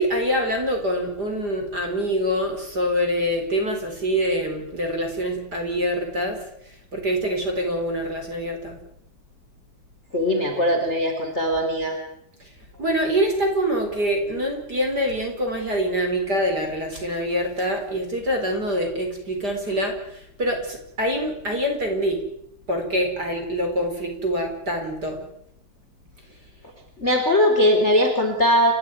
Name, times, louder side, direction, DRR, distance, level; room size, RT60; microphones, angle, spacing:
voice 1, 0.0-6.4 6.9-8.8 12.8-22.2 22.7-25.2, equal, 25° right, 3 dB, 4.7 m, -25 dB
voice 2, 10.1-12.0 27.0-28.7, equal, 20° left, 4 dB, 3.5 m, -20 dB
30.0 x 13.0 x 9.5 m, 0.73 s
omnidirectional pair, 4.4 m